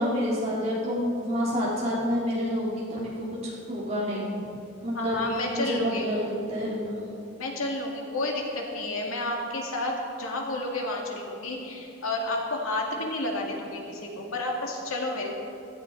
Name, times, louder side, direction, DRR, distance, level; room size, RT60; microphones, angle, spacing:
voice 1, 0.0-4.5 4.8-5.2 5.6-7.0, equal, 30° right, -7 dB, 3.6 m, -28 dB
voice 2, 4.9-6.1 7.4-15.3, left 2 dB, 80° left, 0 dB, 2.2 m, -31 dB
16.0 x 14.0 x 4.1 m, 2.6 s
head